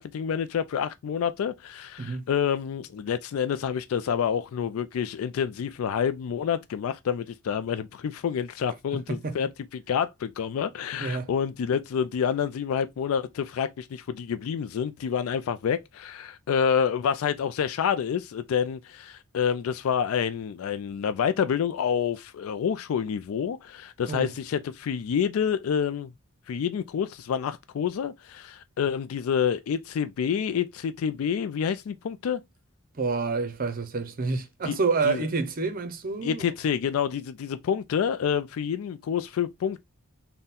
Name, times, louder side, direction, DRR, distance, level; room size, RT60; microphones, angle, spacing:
voice 1, 0.0-26.1 26.5-32.4 34.6-34.8 35.0-35.2 36.2-39.8, left 7 dB, 75° left, 0.3 m, -28 dB
voice 2, 33.0-36.4, right 4 dB, 40° right, 0.6 m, -28 dB
3.7 x 2.2 x 4.1 m
head